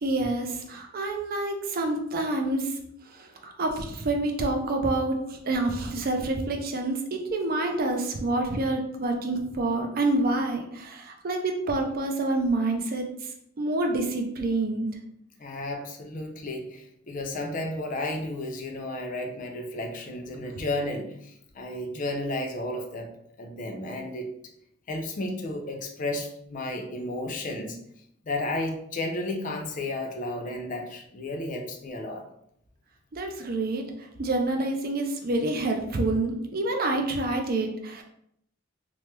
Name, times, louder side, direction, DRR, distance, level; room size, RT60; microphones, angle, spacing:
voice 1, 0.0-2.7 3.4-13.1 13.6-14.9 33.1-33.8 34.2-38.0, right 2 dB, 50° right, 4 dB, 0.5 m, -27 dB
voice 2, 15.4-23.1 23.4-24.3 24.9-27.8 28.3-32.2, left 1 dB, 40° left, 3 dB, 0.5 m, -33 dB
3.0 x 2.1 x 3.2 m, 0.73 s
head